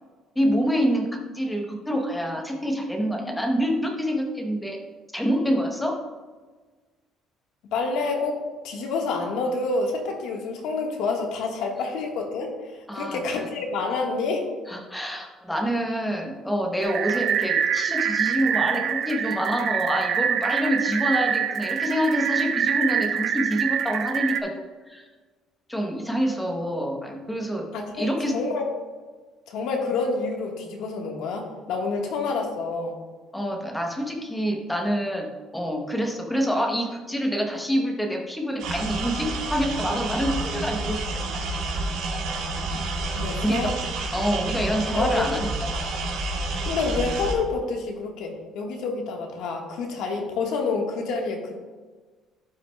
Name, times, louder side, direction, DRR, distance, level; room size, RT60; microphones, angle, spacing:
voice 1, 0.4-4.8 5.1-6.0 12.9-13.5 14.7-24.5 24.9-25.1 25.7-27.7 27.9-28.4 33.3-35.3 35.5-41.2 43.4-43.7 44.1-45.7, equal, 5° left, 1 dB, 0.8 m, -26 dB
voice 2, 7.7-14.5 27.7-28.6 29.5-33.0 43.1-43.7 44.9-45.2 46.6-51.6, left 4 dB, 70° left, 1 dB, 1.4 m, -28 dB
sound 1, 16.8-24.4, right 8 dB, 45° right, 0.4 m, -25 dB
sound 2, 38.6-47.3, right 2 dB, 90° right, 1.5 m, -29 dB
12.0 x 5.8 x 2.2 m, 1.4 s
cardioid pair, 175°, 0 cm